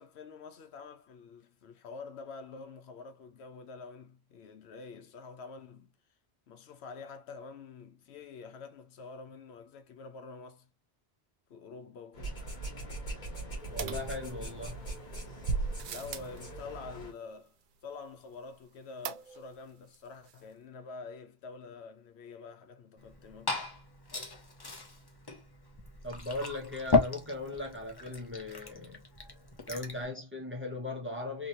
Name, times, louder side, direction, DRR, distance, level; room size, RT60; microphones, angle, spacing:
voice 1, 0.0-5.9 6.5-10.7 11.5-12.4 15.9-17.5 17.8-23.7, left 4 dB, 80° left, 0.9 m, -47 dB
sound 1, 12.1-17.1, right 2 dB, 45° left, 1.5 m, -41 dB
voice 2, 13.7-14.9 26.0-29.0 29.7-31.5, left 2 dB, 10° right, 1.0 m, -38 dB
sound 2, 13.8-14.8 15.4-16.4 19.0-19.6 19.9-20.0 20.3-20.4, right 5 dB, 60° right, 0.6 m, -36 dB
Liquid, 23.0-30.0, left 4 dB, 25° left, 0.6 m, -35 dB
3.0 x 2.8 x 2.6 m
omnidirectional pair, 1.1 m